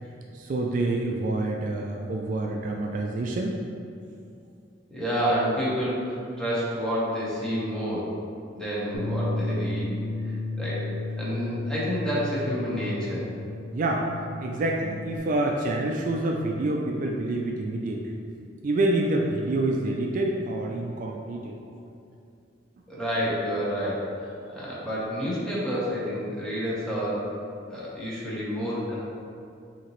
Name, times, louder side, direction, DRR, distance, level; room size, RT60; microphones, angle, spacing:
voice 1, 0.3-3.6 13.7-14.1 14.4-18.1 18.6-21.5, right 2 dB, 45° right, 0 dB, 0.3 m, -27 dB
voice 2, 4.9-8.1 8.5-9.9 10.6-10.9 11.2-13.2 14.5-14.6 21.6-21.7 22.9-27.3 27.7-29.0, equal, 5° left, -8 dB, 1.0 m, -29 dB
Bass guitar, 8.9-15.2, left 2 dB, 80° left, 0.5 m, -33 dB
5.7 x 2.9 x 3.0 m, 2.5 s
head